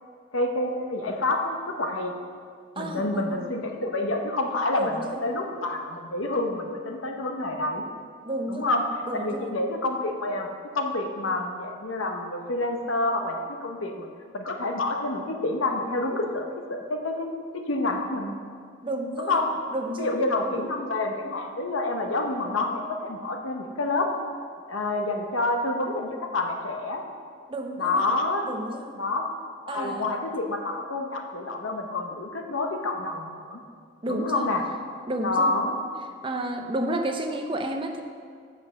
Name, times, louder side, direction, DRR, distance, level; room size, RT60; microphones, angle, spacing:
voice 1, 0.3-2.1 2.8-7.8 8.5-8.8 9.1-10.5 10.7-14.1 14.3-16.4 16.7-18.3 19.2-19.5 20.0-24.1 24.7-27.0 27.8-28.4 29.0-29.3 29.6-33.6 34.1-34.6 35.2-35.8, left 2 dB, 90° left, 3 dB, 1.0 m, -28 dB
voice 2, 2.8-3.4 4.7-5.2 8.2-8.8 9.0-9.6 18.8-19.4 19.7-20.6 27.5-28.1 28.5-29.0 29.7-30.2 34.0-34.5 35.1-35.6 36.2-38.0, right 1 dB, 25° right, 4 dB, 0.6 m, -31 dB
7.4 x 6.0 x 6.9 m, 2.1 s
head